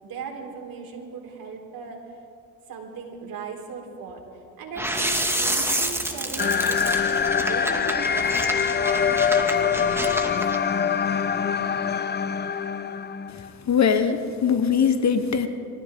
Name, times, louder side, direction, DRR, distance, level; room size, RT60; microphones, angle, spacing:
voice 1, 0.0-2.0 2.7-4.2 4.6-10.4 11.6-11.7, right 5 dB, 55° right, 0 dB, 4.1 m, -37 dB
sound 1, 4.8-10.6, right 1 dB, 5° right, 2.2 m, -29 dB
sound 2, 6.4-13.5, left 7 dB, 25° left, 0.7 m, -24 dB
voice 2, 13.3-15.5, left 7 dB, 40° left, 9 dB, 1.4 m, -22 dB
26.5 x 14.5 x 3.7 m, 2.4 s
supercardioid pair, 65°, 41 cm